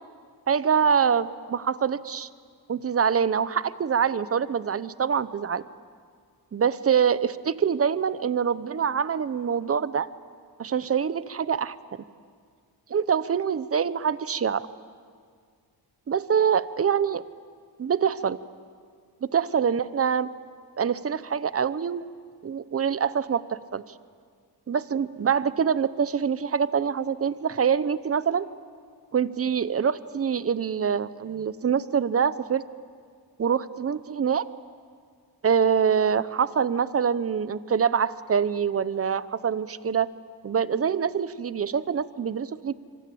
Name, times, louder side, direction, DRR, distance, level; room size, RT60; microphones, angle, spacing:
voice 1, 0.5-2.3 2.7-5.6 6.5-10.1 10.6-11.8 12.9-14.7 16.1-17.2 17.8-18.4 19.2-20.3 20.8-22.1 22.4-23.8 24.7-28.5 29.1-32.6 33.4-34.5 35.4-40.1 40.4-42.7, right 7 dB, 35° right, 15 dB, 0.9 m, -25 dB
26.0 x 25.5 x 8.6 m, 2.1 s
cardioid pair, 115°, 39 cm